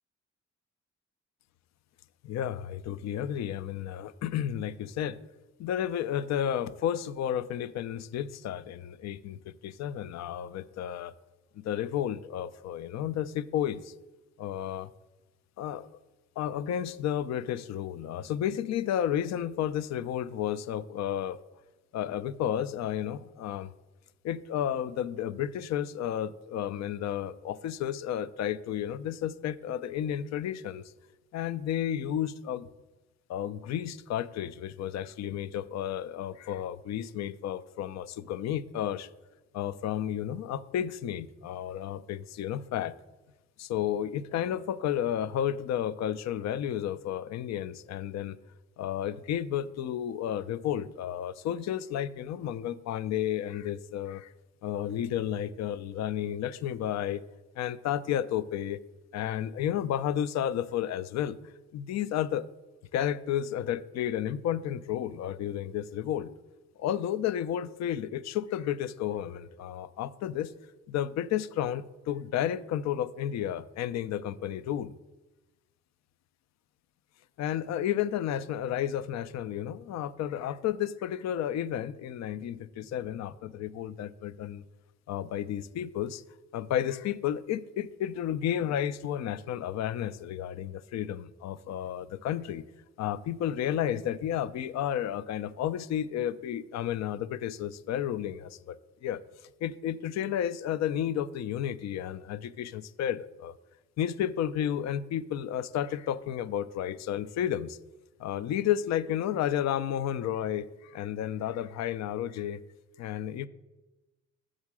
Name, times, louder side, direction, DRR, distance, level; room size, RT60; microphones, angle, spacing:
voice 1, 2.2-5.2 5.6-11.1 11.6-13.9 14.4-14.9 15.6-16.0 16.4-21.4 21.9-23.7 24.2-30.8 31.3-32.7 33.3-39.1 39.5-42.9 43.6-48.4 48.8-54.3 54.6-57.2 57.6-58.8 59.1-61.4 61.7-62.5 62.9-66.3 66.8-70.5 70.9-74.9 77.4-84.6 85.1-86.2 86.5-92.6 93.0-99.2 99.6-103.5 104.0-107.8 108.2-112.6 113.0-113.5, left 10 dB, 65° left, 17 dB, 0.4 m, -32 dB
7.3 x 3.7 x 6.0 m, 1.1 s
cardioid pair, 90°, 30 cm